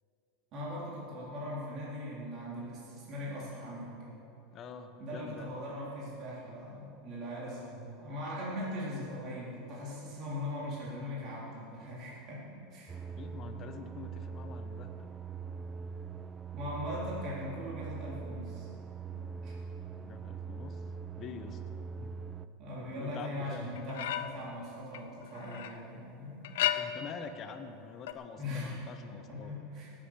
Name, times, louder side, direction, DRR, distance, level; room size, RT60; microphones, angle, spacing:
voice 1, 0.5-4.1 5.0-13.0 16.5-18.7 19.1-19.5 22.6-26.4 28.4-28.8 29.1-29.9, left 1 dB, 35° right, -7 dB, 3.7 m, -40 dB
voice 2, 4.5-5.5 7.5-7.8 13.1-15.1 20.0-20.8 21.2-21.6 21.9-22.1 23.0-23.8 26.6-29.5, left 6 dB, 30° left, 7 dB, 1.0 m, -46 dB
sound 1, 12.9-22.5, right 5 dB, 15° right, 0.4 m, -42 dB
sound 2, 23.8-24.5 24.9-25.8 26.4-27.2 28.1-28.2, left 12 dB, 90° left, 0.7 m, -34 dB
18.5 x 8.4 x 6.4 m, 2.9 s
supercardioid pair, 155°, 0 cm